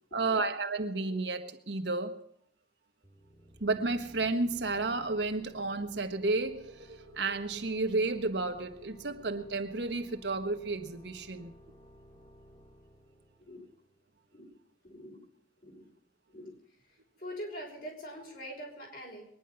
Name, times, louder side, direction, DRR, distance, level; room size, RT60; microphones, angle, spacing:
voice 1, 0.1-2.1 3.6-11.5, right 3 dB, 75° right, 6 dB, 1.4 m, -32 dB
sound 1, 3.0-14.4, equal, 30° left, 2.7 m, -57 dB
voice 2, 14.8-15.2 15.6-15.9 16.3-16.5 16.9-19.3, equal, 55° left, 0 dB, 5.8 m, -44 dB
22.0 x 10.5 x 5.7 m, 0.73 s
head